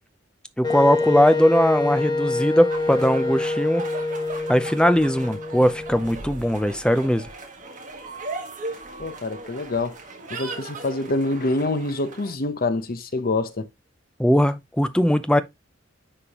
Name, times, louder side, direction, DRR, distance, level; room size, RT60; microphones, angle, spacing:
Wind instrument woodwind instrument, 0.6-6.5, left 2 dB, 25° left, 1.6 m, -27 dB
voice 1, 0.6-3.9 4.5-7.3 14.2-15.4, equal, 5° left, 0.5 m, -20 dB
sound 1, 2.7-12.3, right 3 dB, 40° right, 1.6 m, -38 dB
voice 2, 9.0-10.0 10.3-13.7, left 2 dB, 50° left, 0.8 m, -26 dB
9.9 x 3.6 x 2.9 m
head